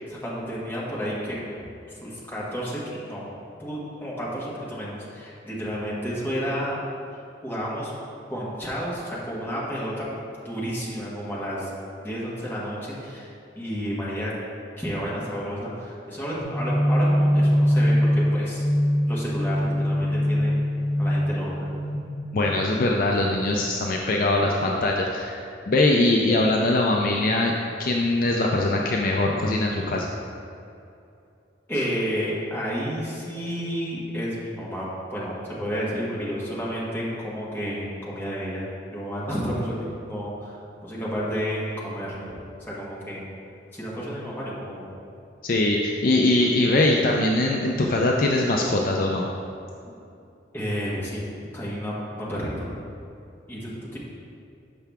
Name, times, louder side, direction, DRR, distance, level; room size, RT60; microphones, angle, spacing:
voice 1, 0.0-1.6 1.9-3.2 3.6-6.8 7.4-7.9 8.3-10.0 10.4-11.7 12.0-13.3 13.5-14.3 14.8-18.6 19.1-20.6 21.0-21.7 31.7-38.7 38.9-42.2 42.7-43.2 43.7-44.9 50.5-51.2 51.5-52.7 53.5-54.0, equal, 10° left, -8 dB, 1.4 m, -31 dB
sound 1, 16.4-21.9, equal, 30° right, 1.4 m, -22 dB
voice 2, 22.3-25.4 25.7-27.5 27.8-30.1 45.4-49.3, left 2 dB, 50° left, -1 dB, 0.4 m, -22 dB
6.8 x 5.7 x 3.5 m, 2.6 s
head